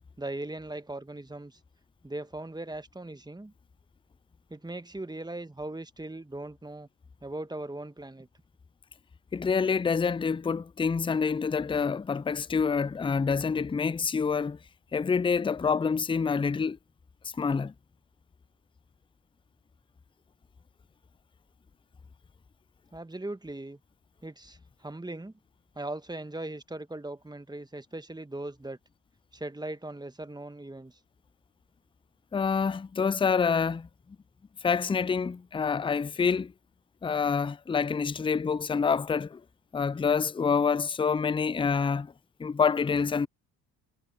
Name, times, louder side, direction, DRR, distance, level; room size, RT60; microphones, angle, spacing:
voice 1, 0.2-1.6 2.0-3.5 4.5-6.9 7.2-8.3 22.9-23.8 24.2-25.3 25.8-28.8 29.3-31.0, right 2 dB, 10° right, 1.9 m, -39 dB
voice 2, 9.3-14.6 14.9-16.8 17.3-17.7 32.3-33.9 34.6-36.5 37.0-39.4 39.7-42.1 42.4-43.3, left 5 dB, 10° left, 0.6 m, -27 dB
hypercardioid pair, 55°, 44 cm